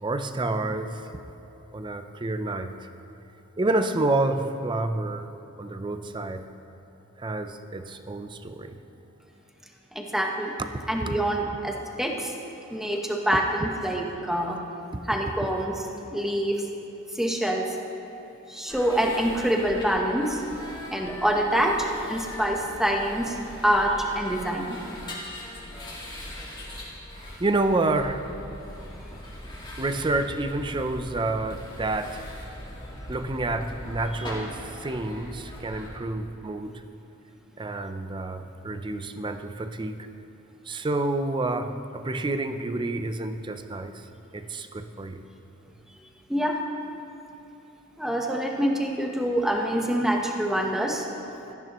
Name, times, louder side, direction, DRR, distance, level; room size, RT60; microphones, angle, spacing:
voice 1, 0.0-1.1 1.7-2.7 3.6-5.3 5.6-6.5 7.2-8.8 11.0-11.2 27.4-28.2 29.8-32.2 33.1-36.8 37.6-40.0 40.7-44.0 44.3-45.2, right 2 dB, 20° right, 9 dB, 0.5 m, -29 dB
voice 2, 9.9-10.5 10.9-12.3 12.7-14.6 15.1-16.6 17.1-17.7 18.5-20.4 20.9-23.4 23.6-24.8 46.3-46.6 48.0-51.1, equal, ahead, 0 dB, 1.0 m, -26 dB
sound 1, 18.7-35.9, left 1 dB, 20° left, 2.1 m, -40 dB
17.5 x 13.5 x 3.0 m, 3.0 s
head